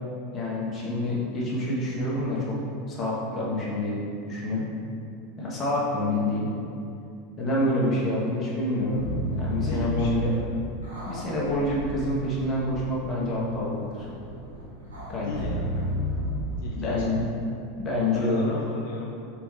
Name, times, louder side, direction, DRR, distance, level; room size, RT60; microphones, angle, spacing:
voice 1, 0.3-2.6 2.9-4.0 4.3-4.7 5.4-6.5 7.4-10.3 11.1-14.1 15.1-15.3 16.8-17.3 17.8-18.6, left 1 dB, 30° left, -5 dB, 1.2 m, -27 dB
sound 1, 8.9-16.7, equal, 85° right, 1.0 m, -33 dB
voice 2, 9.6-10.6 15.2-15.9 16.6-17.4 18.1-19.1, left 3 dB, 65° left, -1 dB, 0.4 m, -37 dB
4.2 x 3.5 x 3.2 m, 2.6 s
hypercardioid pair, 90°, 0 cm